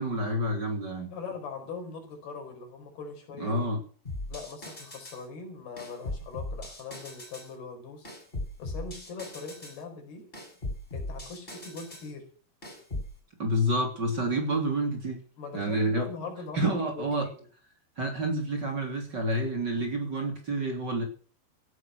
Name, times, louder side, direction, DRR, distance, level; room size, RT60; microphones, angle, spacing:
voice 1, 0.0-1.1 3.4-3.8 13.4-15.2 15.5-16.1 16.5-17.3 18.0-21.0, right 1 dB, 30° right, 3 dB, 3.3 m, -28 dB
voice 2, 1.1-3.7 4.3-8.1 8.6-10.3 10.9-12.3 15.4-16.6 16.8-17.5, left 4 dB, 80° left, 4 dB, 6.6 m, -41 dB
sound 1, 4.1-5.2 5.8-7.5 8.1-9.8 10.3-12.1 12.6-13.1, left 2 dB, 15° left, 6.2 m, -38 dB
16.5 x 11.0 x 6.4 m, 0.42 s
omnidirectional pair, 4.4 m